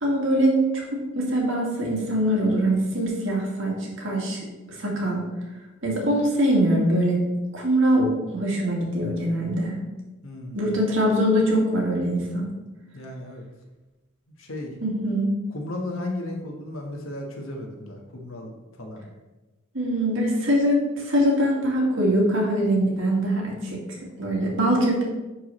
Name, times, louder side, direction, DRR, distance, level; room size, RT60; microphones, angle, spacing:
voice 1, 0.0-4.4 4.8-5.2 5.8-7.2 7.5-9.7 10.5-12.5 14.8-15.3 19.7-25.0, right 1 dB, 65° right, -2 dB, 2.0 m, -23 dB
voice 2, 10.2-10.8 12.9-13.5 14.4-14.7 15.5-18.5 18.8-19.1, left 1 dB, 75° left, 1 dB, 1.3 m, -34 dB
10.5 x 4.6 x 3.2 m, 1.1 s
head